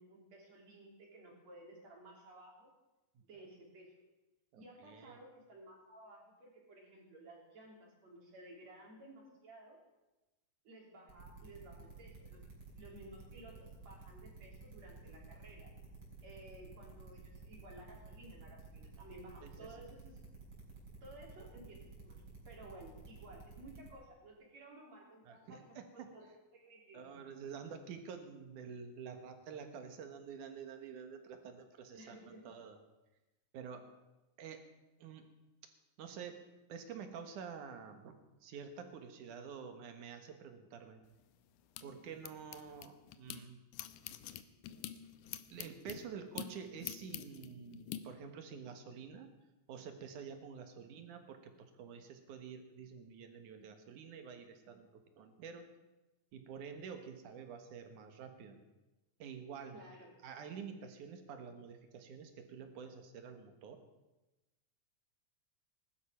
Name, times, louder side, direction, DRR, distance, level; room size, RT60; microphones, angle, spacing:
voice 1, 0.0-2.7 3.2-3.9 4.5-9.8 10.6-12.5 12.7-15.7 16.2-20.2 21.0-22.2 22.5-25.6 25.9-26.3 26.5-27.2 31.9-32.5 33.7-33.8 59.7-60.1, right 1 dB, 60° right, -1 dB, 4.8 m, -55 dB
voice 2, 4.5-5.2 19.4-19.8 25.2-26.1 26.9-32.8 33.5-33.9 34.4-34.6 35.0-35.3 36.0-36.4 36.7-38.1 38.4-41.0 41.8-43.6 45.5-49.4 49.7-55.7 56.3-58.6 59.2-59.8 60.2-63.8, right 6 dB, 90° right, 6 dB, 3.0 m, -49 dB
sound 1, 11.1-23.9, right 4 dB, 45° right, 5.6 m, -53 dB
sound 2, 41.1-43.4 43.7-48.0, left 12 dB, 90° left, 2.3 m, -47 dB
20.0 x 12.0 x 5.8 m, 1.1 s
omnidirectional pair, 3.4 m